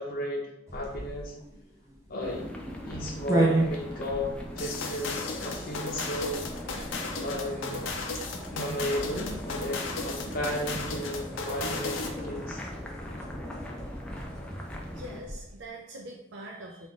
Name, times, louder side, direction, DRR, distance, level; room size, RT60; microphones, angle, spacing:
voice 1, 0.0-1.3 2.1-2.5 2.9-6.4 7.2-7.8 8.5-12.7, equal, 50° left, -2 dB, 0.7 m, -34 dB
sound 1, 0.7-15.6, right 2 dB, 15° right, 0.7 m, -36 dB
sound 2, 2.2-15.2, equal, 5° left, 0.4 m, -40 dB
sound 3, 4.6-12.2, left 4 dB, 80° left, 0.5 m, -35 dB
voice 2, 14.9-16.9, right 1 dB, 65° right, -1 dB, 0.5 m, -43 dB
3.6 x 2.5 x 3.7 m, 0.81 s
head